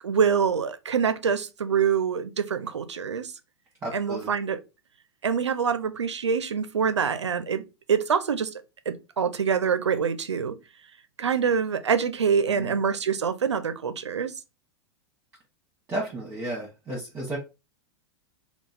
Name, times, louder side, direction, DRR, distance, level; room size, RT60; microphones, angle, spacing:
voice 1, 0.0-3.3 3.9-4.6 5.2-7.6 7.9-8.5 8.9-10.5 11.2-14.3, right 6 dB, 75° right, 0.6 m, -25 dB
voice 2, 3.8-4.3 12.5-12.8 15.9-17.4, right 1 dB, 20° right, 1.3 m, -33 dB
3.8 x 2.3 x 4.0 m
figure-of-eight pair, 95°, 15 cm